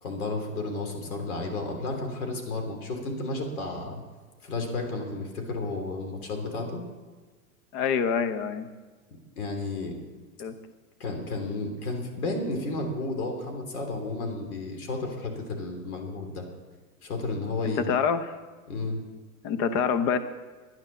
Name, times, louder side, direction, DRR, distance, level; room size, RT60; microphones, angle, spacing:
voice 1, 0.0-4.0 4.4-6.9 9.4-9.9 11.0-16.5 17.0-17.8 18.7-19.0, left 2 dB, 75° left, 3 dB, 3.5 m, -32 dB
voice 2, 7.7-8.7 10.4-10.5 17.9-18.3 19.4-20.2, left 6 dB, 30° left, 11 dB, 0.7 m, -26 dB
11.0 x 10.5 x 6.9 m, 1.3 s
hypercardioid pair, 140°, 44 cm